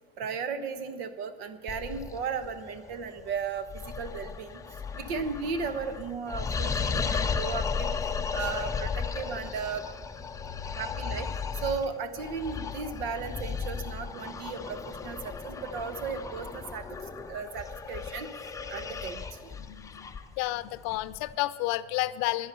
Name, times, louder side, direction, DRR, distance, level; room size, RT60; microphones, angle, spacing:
voice 1, 0.2-4.6 4.9-8.0 8.3-9.8 10.7-11.3 11.5-16.9 17.3-19.5, right 5 dB, 80° right, 10 dB, 1.2 m, -35 dB
sound 1, 1.7-21.3, left 5 dB, 10° left, 0.5 m, -35 dB
voice 2, 19.7-22.5, left 17 dB, 65° left, 16 dB, 0.6 m, -31 dB
11.0 x 10.5 x 6.8 m, 1.4 s
supercardioid pair, 135°, 30 cm